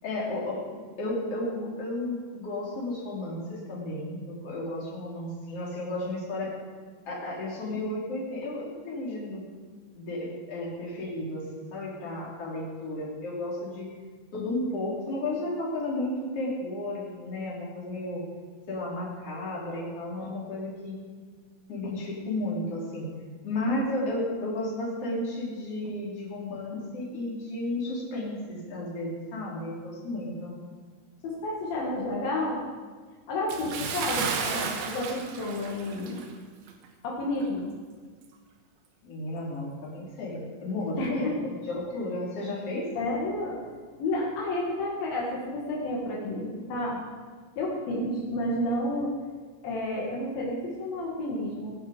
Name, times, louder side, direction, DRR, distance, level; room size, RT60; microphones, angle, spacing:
voice 1, 0.0-6.5 7.1-9.4 9.9-13.9 14.3-18.2 18.7-21.0 21.7-23.1 23.4-30.6 39.0-42.9, left 1 dB, 40° left, -5 dB, 4.3 m, -33 dB
voice 2, 31.2-32.6 33.3-36.3 37.0-37.7 41.0-41.3 43.0-43.6 44.0-47.0 47.6-49.1 49.6-51.8, left 1 dB, 75° left, -3 dB, 3.7 m, -31 dB
Bathtub (filling or washing) / Splash splatter, 33.5-36.4 36.7-36.9 37.4-37.5, right 6 dB, 85° right, 3.2 m, -33 dB
20.0 x 10.5 x 5.1 m, 1.5 s
omnidirectional pair, 4.3 m